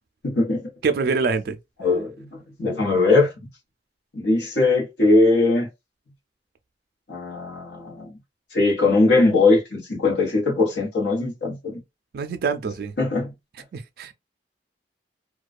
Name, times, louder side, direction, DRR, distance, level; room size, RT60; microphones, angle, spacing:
voice 1, 0.2-0.6 1.8-2.3 2.6-3.3 4.1-5.7 7.1-8.2 8.5-11.8 13.0-13.3, left 3 dB, 80° left, 1.1 m, -20 dB
voice 2, 0.8-1.6 12.1-12.9 13.7-14.1, right 4 dB, 60° right, 0.3 m, -25 dB
2.3 x 2.2 x 2.4 m
head